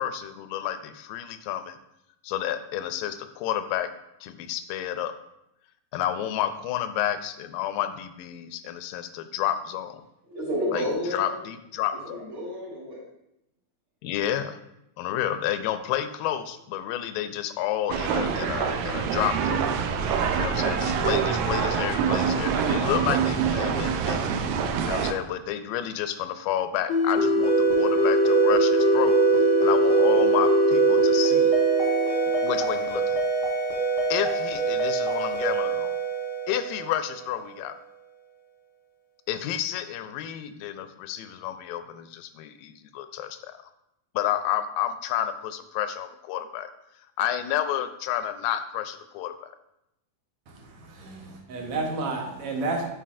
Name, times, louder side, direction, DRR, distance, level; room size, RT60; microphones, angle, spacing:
voice 1, 0.0-1.8 2.2-3.9 4.2-5.1 5.9-10.0 10.7-10.9 11.1-12.3 14.0-14.6 15.0-19.8 20.4-24.3 24.8-29.2 29.6-31.6 32.4-33.2 34.1-36.0 36.5-37.7 39.3-43.6 44.2-46.7 47.2-49.5, left 11 dB, 85° left, 10 dB, 2.2 m, -30 dB
voice 2, 10.3-11.3 12.0-13.0, equal, 50° right, -5 dB, 1.8 m, -30 dB
sound 1, 17.9-25.1, right 7 dB, 90° right, 1.7 m, -25 dB
sound 2, 26.9-37.2, right 2 dB, 55° left, 1.1 m, -22 dB
voice 3, 50.5-52.9, right 3 dB, 75° right, 0 dB, 1.3 m, -31 dB
9.9 x 5.3 x 2.5 m, 0.85 s
omnidirectional pair, 4.0 m